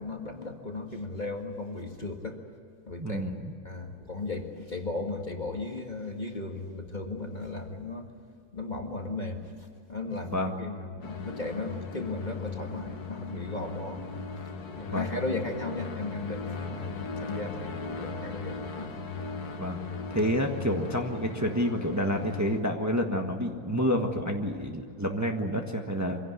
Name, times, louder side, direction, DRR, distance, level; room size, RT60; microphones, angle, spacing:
voice 1, 0.0-2.4 2.9-3.3 3.6-8.1 8.5-9.5 9.9-14.2 14.8-18.9 20.1-20.2, left 3 dB, 30° left, 3 dB, 2.0 m, -36 dB
voice 2, 3.0-3.6 10.3-10.5 14.9-15.1 19.5-19.8 20.1-26.2, equal, 10° right, 2 dB, 1.4 m, -29 dB
sound 1, 11.0-22.6, left 4 dB, 75° left, 2.0 m, -38 dB
25.0 x 17.0 x 9.9 m, 2.4 s
omnidirectional pair, 1.6 m